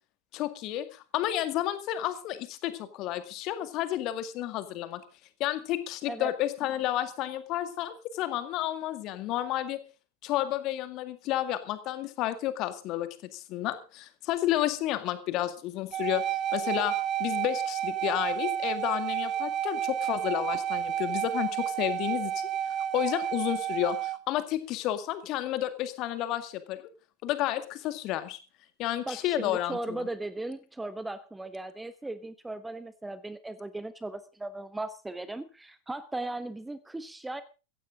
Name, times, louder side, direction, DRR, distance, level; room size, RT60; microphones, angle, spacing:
voice 1, 0.3-5.0 5.4-9.8 10.2-16.9 17.2-22.5 22.9-26.8 27.2-28.4 28.8-30.1, left 13 dB, 40° left, 10 dB, 2.1 m, -31 dB
sound 1, 15.9-24.2, right 10 dB, 30° right, 0.7 m, -31 dB
voice 2, 29.1-37.4, right 2 dB, 5° right, 14 dB, 1.0 m, -37 dB
16.0 x 15.0 x 3.8 m, 0.33 s
figure-of-eight pair, 90°, 0 cm